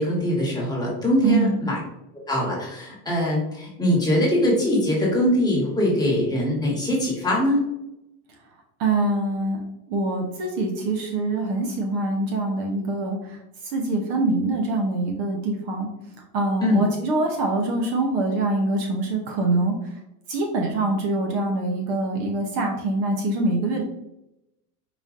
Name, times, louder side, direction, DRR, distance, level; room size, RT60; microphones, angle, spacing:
voice 1, 0.0-1.8 2.3-7.6 16.6-16.8, left 1 dB, 10° left, -4 dB, 1.2 m, -22 dB
voice 2, 1.2-1.6 8.8-9.6 9.9-13.4 13.7-15.9 16.3-19.8 20.3-23.8, right 2 dB, 50° right, 1 dB, 0.8 m, -24 dB
5.0 x 2.6 x 2.5 m, 0.88 s
supercardioid pair, 125°, 47 cm